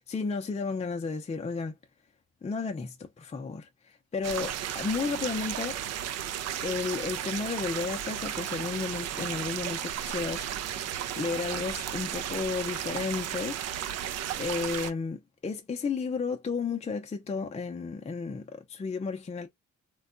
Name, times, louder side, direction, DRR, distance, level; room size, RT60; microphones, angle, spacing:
voice 1, 0.1-1.7 2.4-5.8 6.6-10.5 10.8-13.6 14.4-19.5, left 4 dB, 20° left, 0.5 m, -33 dB
sound 1, 4.2-14.9, right 10 dB, 60° right, 0.4 m, -34 dB
3.3 x 2.3 x 2.4 m
cardioid pair, 90°, 30 cm